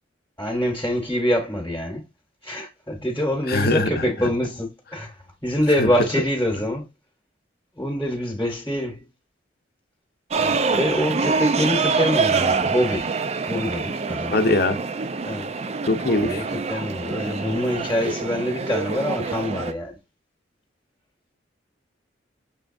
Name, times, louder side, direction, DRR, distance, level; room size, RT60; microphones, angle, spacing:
voice 1, 0.4-2.0 2.4-5.1 5.4-6.9 7.8-9.0 10.4-13.1 13.5-14.4 15.2-15.5 16.1-20.0, equal, 15° left, 1.0 m, -25 dB
voice 2, 3.5-4.1 5.8-5.9 14.3-14.8 15.9-16.4, left 2 dB, 55° left, 0.7 m, -21 dB
sound 1, 10.3-19.7, right 4 dB, 35° right, 0.4 m, -25 dB
6.2 x 3.4 x 2.5 m
head